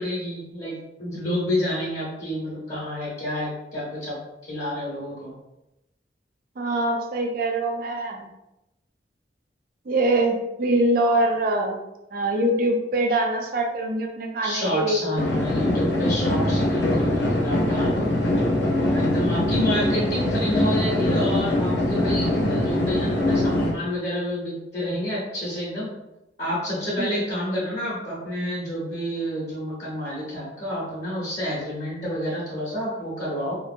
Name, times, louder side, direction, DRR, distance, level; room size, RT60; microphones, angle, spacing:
voice 1, 0.0-4.2 4.4-5.3 14.4-18.1 18.8-25.9 26.4-33.5, equal, 40° left, -9 dB, 1.0 m, -29 dB
voice 2, 6.6-8.3 9.9-11.8 12.1-15.2 27.0-27.1, right 1 dB, 55° right, 2 dB, 0.4 m, -23 dB
sound 1, 15.2-23.7, left 1 dB, 75° left, 0.6 m, -22 dB
2.9 x 2.0 x 2.6 m, 0.90 s
head